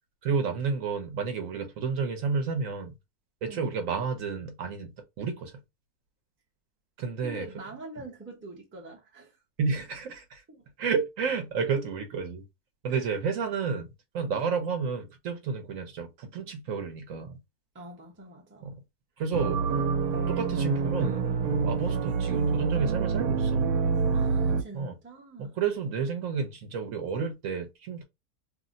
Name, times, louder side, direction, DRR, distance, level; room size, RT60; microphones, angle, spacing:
voice 1, 0.2-2.9 3.4-5.5 7.0-7.5 9.6-10.4 10.8-12.4 12.8-13.9 14.1-17.4 18.6-18.8 19.2-19.6 20.3-21.3 21.6-23.7 24.7-24.9 25.4-28.0, right 5 dB, 65° right, 1.0 m, -31 dB
voice 2, 7.2-9.4 10.5-10.6 12.9-13.0 17.7-18.8 19.7-19.9 24.1-25.6, right 2 dB, 10° right, 0.5 m, -45 dB
sound 1, 19.3-24.6, right 5 dB, 90° right, 1.1 m, -26 dB
2.7 x 2.0 x 3.7 m
omnidirectional pair, 1.6 m